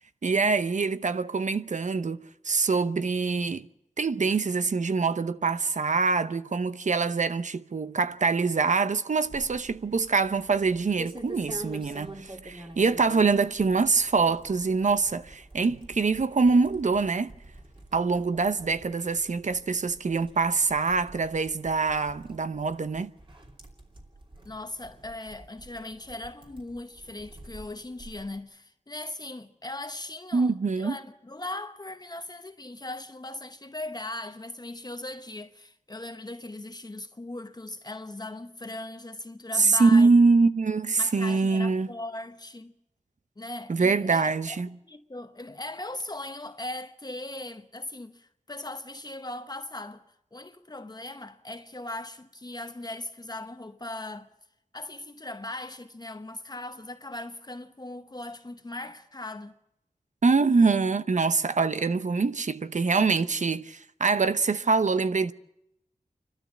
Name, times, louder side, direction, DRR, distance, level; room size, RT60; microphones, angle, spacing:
voice 1, 0.2-2.2 2.4-3.7 4.0-17.3 17.9-23.1 30.3-31.0 39.5-41.9 43.7-44.8 60.2-65.3, right 4 dB, 65° right, 0.8 m, -24 dB
sound 1, 9.2-28.4, right 1 dB, 40° right, 2.8 m, -47 dB
voice 2, 24.4-40.1 41.0-42.7 43.4-44.6 44.8-50.0 50.3-54.3 54.7-59.5, left 2 dB, 30° left, 0.9 m, -39 dB
29.0 x 12.5 x 7.2 m
wide cardioid pair, 75°, 14 cm